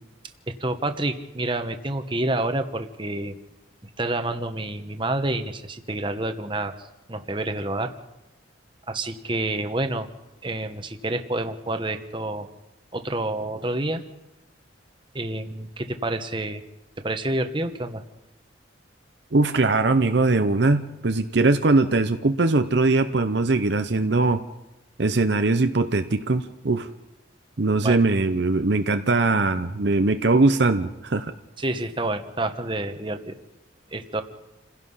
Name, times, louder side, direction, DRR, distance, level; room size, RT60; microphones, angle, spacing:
voice 1, 0.5-3.4 3.8-6.7 7.1-7.9 8.9-10.1 10.4-12.5 12.9-14.0 15.1-16.6 17.0-18.0 27.8-28.0 31.6-33.4 33.9-34.2, right 2 dB, 25° right, 7 dB, 1.2 m, -28 dB
voice 2, 19.3-24.4 25.0-26.9 27.6-31.3, right 3 dB, 60° right, 8 dB, 0.8 m, -21 dB
28.5 x 16.5 x 5.6 m, 0.98 s
head